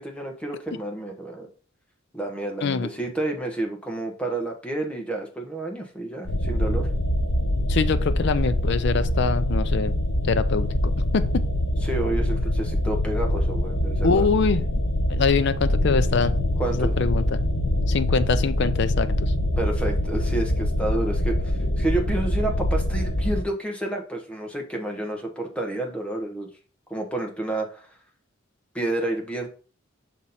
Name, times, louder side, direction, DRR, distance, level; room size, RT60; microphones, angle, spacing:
voice 1, 0.0-1.5 2.1-6.9 11.8-14.3 16.6-16.9 19.6-21.5 21.8-26.5 26.9-27.8 28.7-29.5, right 2 dB, 5° left, 1 dB, 1.2 m, -30 dB
sound 1, 6.2-23.4, left 1 dB, 85° left, 1.1 m, -24 dB
voice 2, 7.7-9.9 10.3-11.4 14.0-14.6 15.1-16.4 16.7-17.4 17.9-19.3, left 5 dB, 60° left, 10 dB, 0.5 m, -24 dB
6.1 x 4.2 x 4.1 m, 0.38 s
head